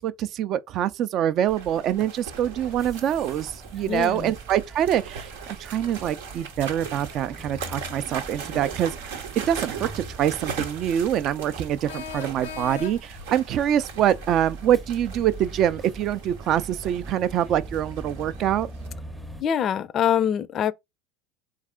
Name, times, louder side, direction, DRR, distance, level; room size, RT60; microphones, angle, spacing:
voice 1, 0.0-5.3 5.6-8.9 9.5-18.7, right 10 dB, 50° right, 0.4 m, -25 dB
sound 1, 1.5-18.9, right 6 dB, 80° right, 0.8 m, -39 dB
sound 2, 2.3-19.4, right 1 dB, 10° right, 0.7 m, -42 dB
voice 2, 3.9-4.3 19.4-20.7, left 9 dB, 40° left, 0.4 m, -24 dB
sound 3, 11.9-13.3, left 9 dB, 90° left, 0.6 m, -38 dB
3.6 x 3.2 x 3.6 m
supercardioid pair, 100°, 0 cm